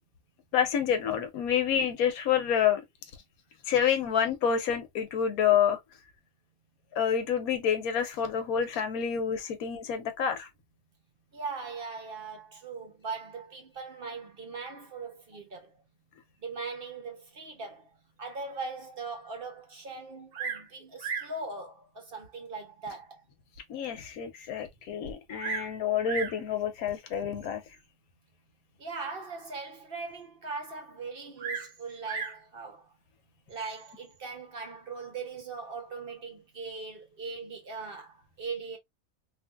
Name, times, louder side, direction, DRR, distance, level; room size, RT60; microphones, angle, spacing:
voice 1, 0.5-2.8 3.7-5.8 6.9-10.5 23.7-27.6, left 8 dB, 85° left, 1.3 m, -28 dB
voice 2, 11.3-15.8 16.4-23.2 28.8-32.9 33.5-38.8, right 4 dB, 50° right, 0.8 m, -40 dB
Bird vocalization bird call bird song, 20.3-20.7 21.0-21.4 22.2-22.3 23.0-23.1 23.6-23.7 23.9-24.0 25.0-25.7 26.0-26.4 27.4-27.7 31.4-32.4 33.5-33.9, right 6 dB, 75° right, 1.1 m, -36 dB
3.2 x 2.6 x 2.3 m
omnidirectional pair, 1.5 m